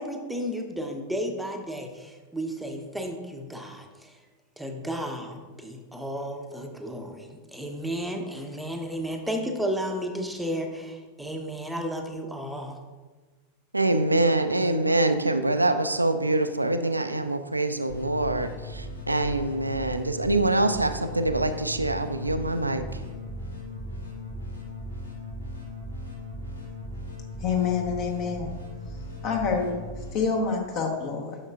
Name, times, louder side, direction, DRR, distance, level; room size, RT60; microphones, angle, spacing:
voice 1, 0.0-4.2 4.6-12.8, equal, ahead, 3 dB, 0.8 m, -33 dB
voice 2, 13.7-23.0, right 2 dB, 85° right, 9 dB, 0.4 m, -25 dB
sound 1, 17.9-30.1, left 1 dB, 80° left, 1.3 m, -38 dB
voice 3, 27.4-28.5 29.2-31.4, left 5 dB, 40° left, 2 dB, 1.2 m, -27 dB
9.0 x 6.2 x 2.4 m, 1.3 s
figure-of-eight pair, 90°, 0 cm